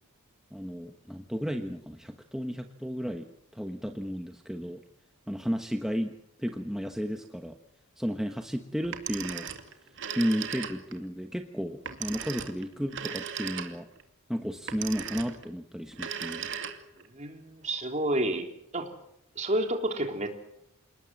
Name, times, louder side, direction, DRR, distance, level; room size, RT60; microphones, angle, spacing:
voice 1, 0.5-4.8 5.3-7.6 8.0-9.5 10.2-13.9 14.3-16.5, equal, ahead, 5 dB, 1.2 m, -33 dB
Telephone, 8.8-11.0 11.9-14.0 14.7-15.5 15.9-17.1, right 7 dB, 55° right, 2.3 m, -37 dB
voice 2, 17.1-18.5 18.7-18.9 19.4-20.3, right 1 dB, 30° right, 4 dB, 3.6 m, -29 dB
28.0 x 19.0 x 7.8 m, 0.75 s
head